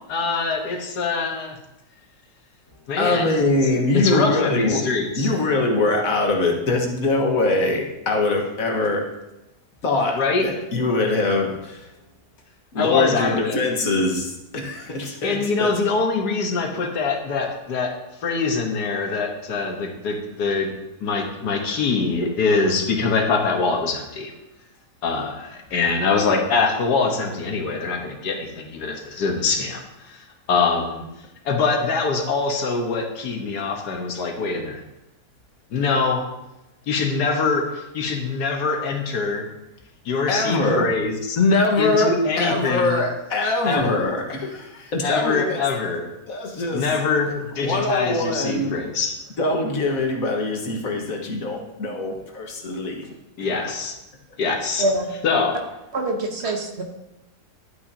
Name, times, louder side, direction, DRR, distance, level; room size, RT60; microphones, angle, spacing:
voice 1, 0.1-1.6 2.9-3.3 3.6-5.3 10.1-10.5 12.8-13.6 15.2-17.9 18.2-20.7 21.0-24.3 25.0-31.1 31.4-34.8 35.7-36.2 36.9-39.5 40.0-41.4 41.8-43.0 43.6-44.1 45.0-46.1 46.7-49.1 53.4-53.9 54.4-54.8 55.2-55.6, left 4 dB, 85° left, 3 dB, 1.7 m, -24 dB
voice 2, 3.0-4.9 5.2-9.1 9.8-11.8 12.7-15.7 40.3-40.9 41.4-45.6 46.3-47.1 47.6-48.7 49.4-53.1, left 2 dB, 60° left, 1 dB, 1.8 m, -23 dB
voice 3, 54.8-55.1 55.9-56.8, right 1 dB, 45° right, 3 dB, 1.1 m, -24 dB
11.5 x 8.7 x 2.7 m, 0.94 s
omnidirectional pair, 1.7 m